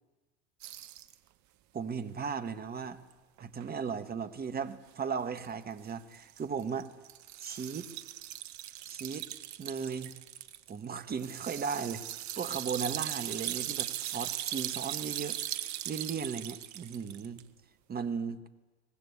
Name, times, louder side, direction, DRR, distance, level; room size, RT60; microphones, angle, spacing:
sound 1, 0.6-1.1 3.1-3.2 3.4-3.7 5.4-5.5 6.1-17.4, right 13 dB, 45° right, 1.3 m, -39 dB
voice 1, 1.7-3.0 3.4-6.9 7.4-7.9 8.9-9.3 9.6-10.1 10.7-12.0 12.4-17.4 17.9-18.4, right 6 dB, 25° right, 10 dB, 1.6 m, -36 dB
24.0 x 19.5 x 8.5 m, 1.1 s
hypercardioid pair, 85°, 38 cm